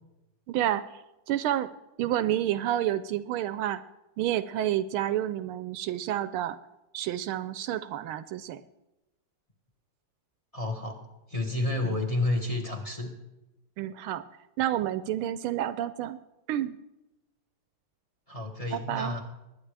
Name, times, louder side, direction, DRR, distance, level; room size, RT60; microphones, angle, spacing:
voice 1, 0.5-1.0 1.3-1.7 2.0-3.8 4.2-6.6 6.9-8.6 11.8-12.0 13.8-14.2 14.6-16.2 16.5-16.8 18.7-19.2, right 12 dB, 80° right, 13 dB, 1.4 m, -29 dB
voice 2, 10.5-11.0 11.3-13.1 18.3-19.2, left 2 dB, 20° left, 3 dB, 1.4 m, -30 dB
21.0 x 9.7 x 3.3 m, 0.95 s
omnidirectional pair, 2.4 m